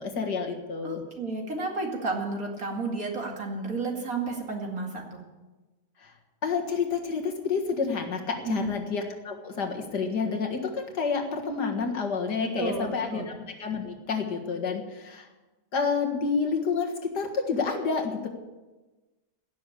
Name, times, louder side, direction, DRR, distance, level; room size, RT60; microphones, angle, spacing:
voice 1, 0.0-1.0 6.0-6.1 6.4-13.3 13.6-15.3 15.7-18.3, left 5 dB, 75° left, 3 dB, 2.3 m, -29 dB
voice 2, 0.8-5.2 8.4-8.7 12.6-13.3, right 3 dB, 55° right, 1 dB, 2.7 m, -32 dB
16.0 x 7.0 x 9.8 m, 1.2 s
omnidirectional pair, 1.8 m